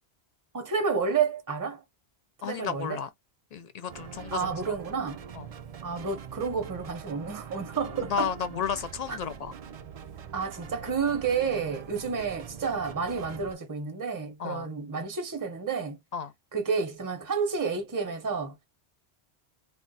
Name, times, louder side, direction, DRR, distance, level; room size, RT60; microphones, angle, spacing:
voice 1, 0.5-1.8 2.4-3.0 4.3-5.2 5.8-8.3 9.1-9.2 10.3-16.0 16.5-18.7, right 5 dB, 20° right, 0.7 m, -30 dB
voice 2, 2.4-3.1 3.5-4.7 5.3-5.5 8.0-9.5 14.4-14.7 16.1-16.3, left 7 dB, 55° left, 0.4 m, -33 dB
sound 1, 3.9-13.5, right 7 dB, 60° right, 0.4 m, -44 dB
2.3 x 2.3 x 3.9 m
omnidirectional pair, 1.1 m